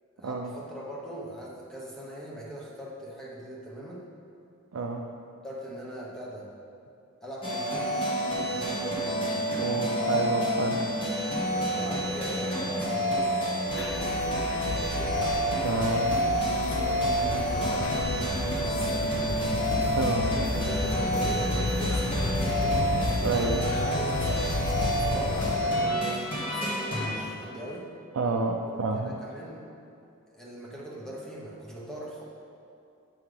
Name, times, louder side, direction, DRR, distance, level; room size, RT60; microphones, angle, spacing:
voice 1, 0.2-4.1 5.4-6.5 7.2-7.9 8.4-9.4 11.7-13.4 14.7-15.2 16.3-18.0 18.5-19.6 20.1-22.8 23.8-27.9 28.7-29.6 30.3-32.2, right 1 dB, ahead, -5 dB, 0.9 m, -41 dB
voice 2, 4.7-5.1 9.6-10.9 15.6-16.2 20.0-20.3 23.2-23.7 28.2-29.2, right 4 dB, 70° right, 1 dB, 0.4 m, -29 dB
sound 1, 7.4-27.1, equal, 25° left, 1.3 m, -28 dB
sound 2, 13.7-25.6, left 2 dB, 55° left, 0.5 m, -32 dB
7.7 x 5.8 x 3.3 m, 2.6 s
head